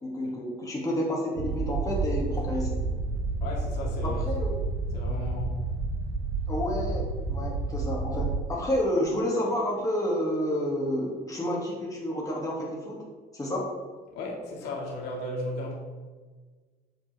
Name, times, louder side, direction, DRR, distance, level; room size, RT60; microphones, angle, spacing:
voice 1, 0.0-2.8 4.0-4.6 6.5-7.0 7.3-13.0 13.3-13.7, left 1 dB, 20° left, -3 dB, 2.3 m, -30 dB
sound 1, 1.4-8.4, right 3 dB, 90° right, 0.8 m, -30 dB
voice 2, 3.4-4.2 4.9-5.6 14.1-15.8, left 2 dB, 80° left, -2 dB, 2.1 m, -35 dB
8.1 x 7.6 x 3.5 m, 1.4 s
cardioid pair, 110°, 17 cm